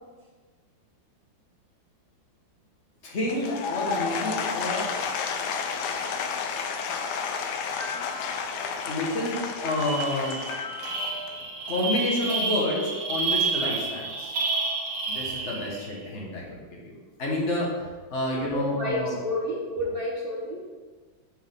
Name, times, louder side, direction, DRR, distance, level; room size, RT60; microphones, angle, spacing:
voice 1, 3.0-4.9 7.8-9.4 9.6-14.3 15.1-19.2, left 1 dB, 40° left, -3 dB, 1.5 m, -30 dB
Applause / Crowd, 3.2-11.4, left 5 dB, 70° left, 1.1 m, -31 dB
sound 1, 9.1-9.2 9.5-15.9, right 4 dB, 90° right, 1.8 m, -30 dB
voice 2, 18.3-20.6, left 1 dB, 40° right, -3 dB, 0.9 m, -30 dB
6.6 x 6.0 x 3.7 m, 1.4 s
omnidirectional pair, 2.2 m